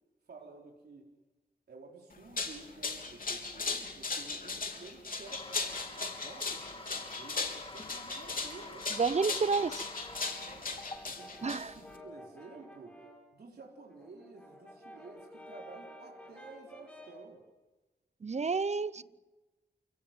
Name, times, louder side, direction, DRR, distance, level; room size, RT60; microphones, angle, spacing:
voice 1, 0.3-1.1 1.7-8.9 9.2-9.5 10.4-13.0 13.3-17.4 19.0-19.1, right 3 dB, 75° right, 4.0 m, -52 dB
sound 1, 2.1-12.0, left 4 dB, 60° left, 3.6 m, -38 dB
Toilet flush, 5.3-11.0, left 2 dB, 35° left, 2.1 m, -48 dB
voice 2, 9.0-9.7 11.4-11.7 18.2-19.0, right 4 dB, 40° right, 0.8 m, -29 dB
Brass instrument, 9.7-13.3 13.7-17.3, equal, 5° left, 6.4 m, -52 dB
28.5 x 17.5 x 7.6 m
cardioid pair, 70°, 17 cm